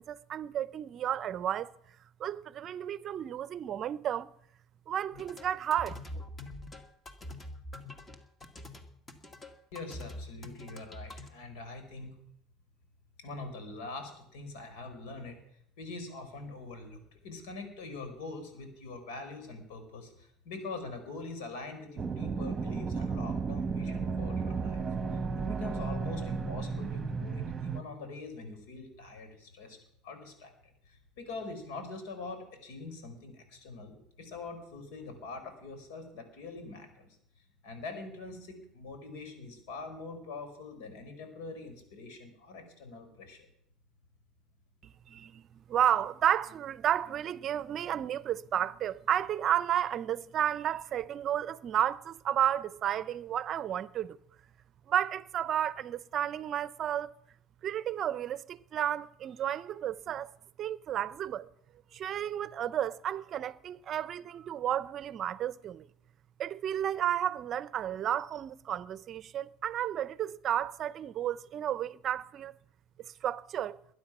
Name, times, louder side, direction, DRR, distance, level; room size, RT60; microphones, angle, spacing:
voice 1, 0.0-1.7 2.2-4.3 4.9-6.2 44.8-54.2 54.9-57.1 57.6-60.3 60.6-61.5 61.9-65.9 66.4-72.5 73.0-73.8, right 10 dB, 45° right, 0.6 m, -32 dB
sound 1, 5.1-11.3, left 1 dB, 25° left, 2.0 m, -45 dB
voice 2, 9.7-12.1 13.2-15.4 15.8-24.8 25.1-29.8 30.0-30.5 30.9-37.1 37.6-43.5, left 3 dB, 80° left, 4.3 m, -44 dB
sound 2, 22.0-27.8, right 5 dB, 25° right, 1.2 m, -33 dB
21.0 x 9.5 x 6.1 m
supercardioid pair, 110°, 0 cm